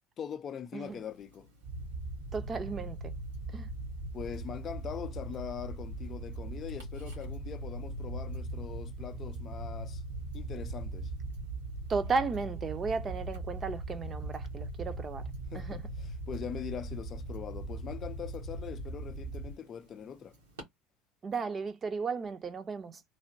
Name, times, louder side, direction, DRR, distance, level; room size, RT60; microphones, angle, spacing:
voice 1, 0.2-1.5 4.1-10.0 10.3-11.1 15.5-15.8 16.3-20.4, left 8 dB, 40° left, 0.4 m, -42 dB
Tick-tock, 0.8-20.6, right 1 dB, 85° right, 1.5 m, -60 dB
sound 1, 1.6-19.5, right 2 dB, 65° right, 0.7 m, -39 dB
voice 2, 2.3-3.1 3.5-3.7 11.9-15.3 15.5-15.8 21.2-23.0, right 4 dB, 30° right, 0.6 m, -34 dB
3.2 x 2.1 x 2.6 m
hypercardioid pair, 80°, 0 cm